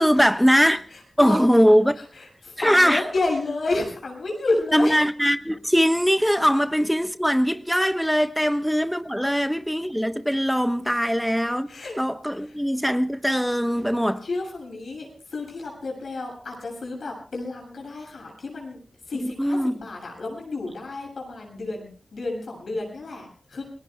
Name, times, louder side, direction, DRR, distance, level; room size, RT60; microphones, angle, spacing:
voice 1, 0.0-0.8 1.2-1.9 2.6-3.0 4.7-11.7 12.0-14.2 19.2-19.7, equal, ahead, 1.1 m, -21 dB
voice 2, 0.9-1.4 2.1-5.0 8.4-8.5 9.2-9.4 11.7-12.0 12.5-12.6 13.8-13.9 14.2-18.8 19.1-23.6, left 2 dB, 80° left, 7.2 m, -31 dB
29.0 x 19.5 x 2.2 m
cardioid pair, 45°, 0 cm